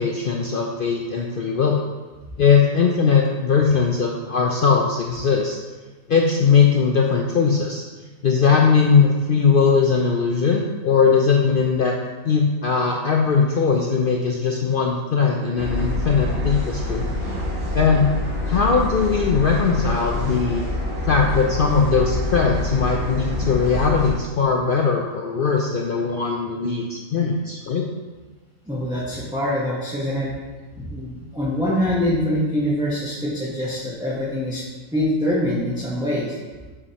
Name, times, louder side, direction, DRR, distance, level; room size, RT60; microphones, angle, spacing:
voice 1, 0.0-1.8 2.4-5.6 6.1-7.8 8.2-12.0 12.2-17.1 17.7-18.1 18.5-20.6 21.1-27.9, left 5 dB, 65° left, 0 dB, 0.5 m, -19 dB
sound 1, 15.5-24.1, left 2 dB, 45° right, 2.3 m, -26 dB
voice 2, 28.7-30.3 30.8-34.6 34.9-36.3, left 1 dB, 5° right, -7 dB, 0.9 m, -24 dB
7.4 x 4.9 x 2.8 m, 1.3 s
omnidirectional pair, 1.5 m